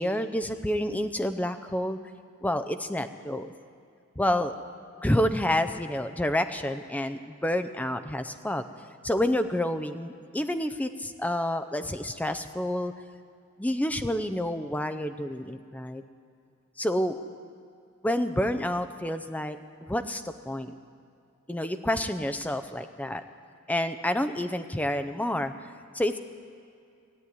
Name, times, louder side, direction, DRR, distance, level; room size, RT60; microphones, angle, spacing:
voice 1, 0.0-2.0 2.4-3.5 4.2-4.6 5.0-8.6 9.0-12.9 13.6-16.0 16.8-17.2 18.0-20.7 21.5-23.2 23.7-25.5 25.9-26.2, left 1 dB, 5° left, 9 dB, 0.5 m, -29 dB
16.5 x 8.5 x 9.5 m, 2.4 s
head